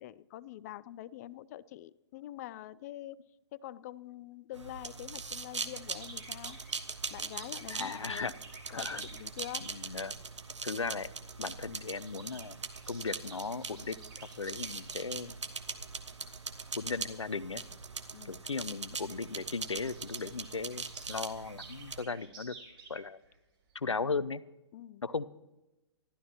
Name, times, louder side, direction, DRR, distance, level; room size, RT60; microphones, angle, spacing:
voice 1, 0.0-3.2 3.5-6.6 7.1-8.3 8.7-9.7 18.1-18.4 24.7-25.0, left 14 dB, 35° left, 19 dB, 0.5 m, -45 dB
sound 1, 4.5-22.0, right 4 dB, 80° right, 1.3 m, -41 dB
sound 2, 5.7-10.0 11.0-11.2 11.5-15.2 15.9-16.2 16.8-16.9 17.2-17.4 18.3-18.4 18.7-18.8 18.9-23.4 23.7-23.8, right 4 dB, 50° right, 5.4 m, -52 dB
voice 2, 7.7-8.3 8.7-9.0 9.6-10.2 10.6-11.1 11.4-12.6 12.9-14.0 14.4-15.3 16.7-17.6 18.2-22.5 22.9-23.2 23.7-24.4 25.0-25.2, left 4 dB, 90° left, 18 dB, 0.6 m, -36 dB
26.5 x 12.5 x 2.9 m, 1.0 s
figure-of-eight pair, 125°, 15 cm